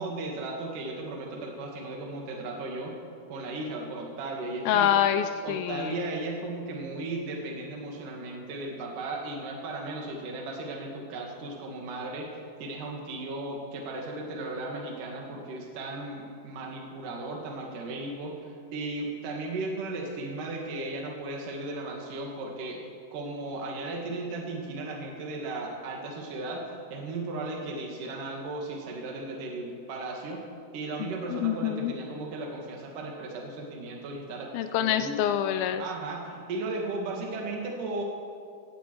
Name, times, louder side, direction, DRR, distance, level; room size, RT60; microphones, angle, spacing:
voice 1, 0.0-2.9 3.3-4.9 5.4-22.8 23.1-26.6 26.9-30.4 30.7-34.5 34.8-35.2 35.8-38.0, right 2 dB, 55° right, 0 dB, 3.4 m, -36 dB
voice 2, 4.7-6.1 31.0-31.9 34.5-35.9, left 10 dB, 80° left, 9 dB, 2.2 m, -26 dB
17.0 x 16.5 x 4.7 m, 2.2 s
omnidirectional pair, 4.7 m